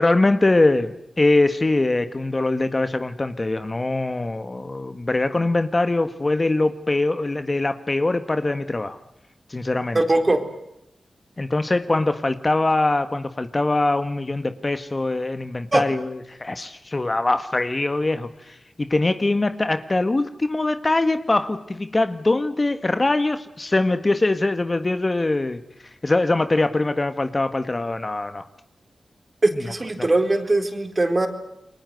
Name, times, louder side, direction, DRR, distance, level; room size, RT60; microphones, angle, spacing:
voice 1, 0.0-9.0 9.5-10.0 11.4-25.6 26.0-28.4 29.5-29.7 30.0-30.1, left 2 dB, 30° left, 10 dB, 1.6 m, -22 dB
voice 2, 9.9-10.4 15.7-15.8 29.4-31.3, right 2 dB, 35° right, 7 dB, 4.0 m, -20 dB
29.5 x 23.0 x 8.0 m, 0.82 s
wide cardioid pair, 75°, 0 cm